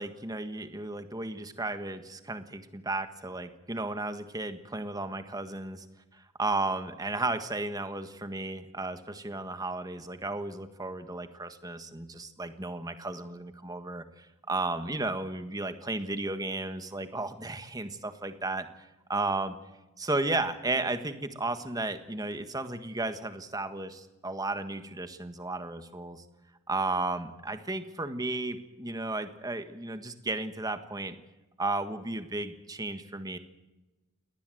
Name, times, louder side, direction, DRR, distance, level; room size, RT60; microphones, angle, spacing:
voice 1, 0.0-5.8 6.4-18.7 19.1-19.5 20.0-26.2 26.7-31.1 31.6-33.4, right 2 dB, 15° right, 9 dB, 1.5 m, -34 dB
22.0 x 19.0 x 7.9 m, 1.1 s
head